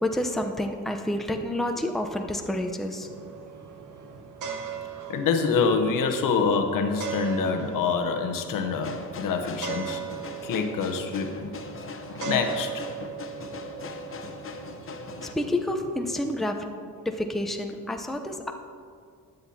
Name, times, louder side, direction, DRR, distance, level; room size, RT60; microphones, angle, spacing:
voice 1, 0.0-3.1 15.2-16.7 17.0-18.5, left 1 dB, ahead, 3 dB, 0.7 m, -29 dB
sound 1, 3.0-16.2, right 7 dB, 65° right, 1.0 m, -39 dB
voice 2, 5.1-10.0 10.4-11.5 12.2-12.9, left 5 dB, 70° left, 5 dB, 0.9 m, -26 dB
sound 2, 8.7-15.3, left 4 dB, 40° left, 0.8 m, -40 dB
12.5 x 7.9 x 2.8 m, 2.1 s
cardioid pair, 80°, 34 cm